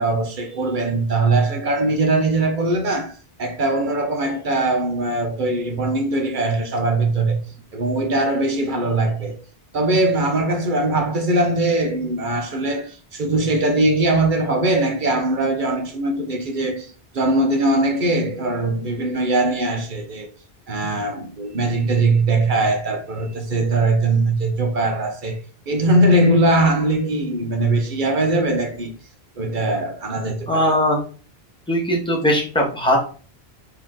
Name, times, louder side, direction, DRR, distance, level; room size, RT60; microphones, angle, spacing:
voice 1, 0.0-3.1 3.4-7.4 7.7-9.4 9.7-20.3 20.7-28.9 29.4-30.7, right 2 dB, 55° right, 1.0 m, -21 dB
voice 2, 30.5-31.0 31.7-33.0, equal, 5° left, 1.3 m, -19 dB
4.4 x 3.2 x 3.7 m
omnidirectional pair, 1.1 m